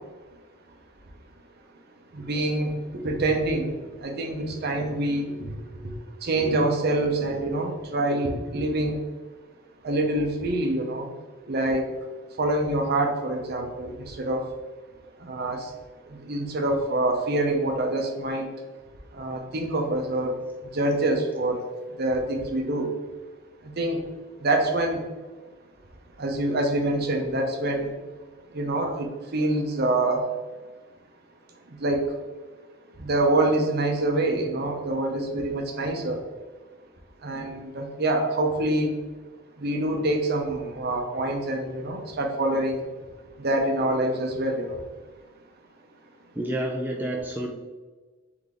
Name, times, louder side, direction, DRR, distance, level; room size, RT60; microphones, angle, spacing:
voice 1, 2.1-3.7 4.0-5.3 6.2-9.0 9.8-11.1 11.5-11.9 12.4-14.4 15.3-15.7 16.3-18.5 19.2-20.3 20.7-21.6 22.0-22.9 23.8-24.0 24.4-25.0 26.2-27.9 28.5-29.1 29.3-30.2 31.8-32.0 33.0-36.2 37.2-38.9 39.6-42.9 43.4-44.8, right 2 dB, 50° right, 3 dB, 0.7 m, -25 dB
voice 2, 46.3-47.5, right 1 dB, 10° right, -1 dB, 0.4 m, -29 dB
3.8 x 3.4 x 3.6 m, 1.3 s
head